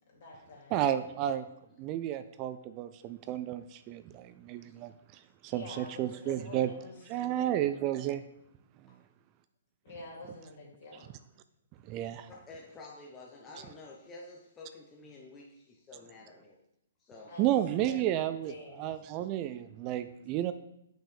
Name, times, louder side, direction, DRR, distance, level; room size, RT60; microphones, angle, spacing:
voice 1, 0.1-0.8 5.5-7.6 9.8-11.1 17.3-17.5 17.9-18.2 18.5-18.9, left 3 dB, 55° left, -3 dB, 2.9 m, -47 dB
voice 2, 0.7-1.5 1.8-4.9 5.4-6.7 7.1-8.2 11.9-12.3 17.4-18.5 18.8-20.5, right 12 dB, 30° right, 11 dB, 0.3 m, -32 dB
voice 3, 12.3-16.6 17.0-17.3 19.8-20.0, left 2 dB, 20° left, -2 dB, 0.9 m, -50 dB
7.3 x 5.7 x 3.4 m, 0.80 s
hypercardioid pair, 135°, 0 cm